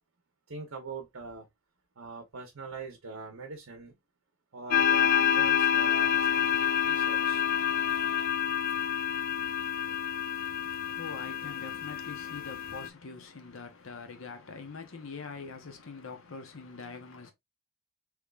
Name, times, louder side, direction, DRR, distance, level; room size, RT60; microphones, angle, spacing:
voice 1, 0.5-1.5 2.0-4.0 4.5-7.4, right 3 dB, 80° right, 0.9 m, -43 dB
sound 1, 4.7-12.9, left 9 dB, 45° left, 0.3 m, -28 dB
voice 2, 10.4-17.3, left 4 dB, 70° left, 0.8 m, -44 dB
3.6 x 3.0 x 2.3 m
head